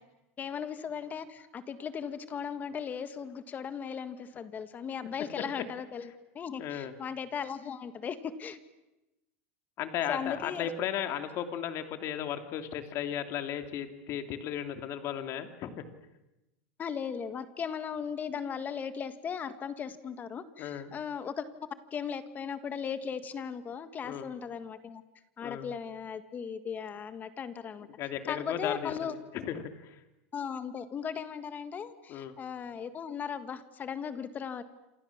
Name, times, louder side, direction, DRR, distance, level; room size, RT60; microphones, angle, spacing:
voice 1, 0.4-6.1 6.3-8.6 10.1-10.7 16.8-21.4 21.9-25.0 25.4-27.9 28.3-29.1 30.3-34.6, left 7 dB, 25° left, 11 dB, 1.7 m, -37 dB
voice 2, 6.6-6.9 9.8-15.8 20.6-20.9 24.0-24.3 25.4-25.7 28.0-30.0 32.1-32.4, left 9 dB, 45° left, 7 dB, 2.9 m, -35 dB
28.0 x 27.0 x 7.4 m, 0.96 s
supercardioid pair, 140°, 7 cm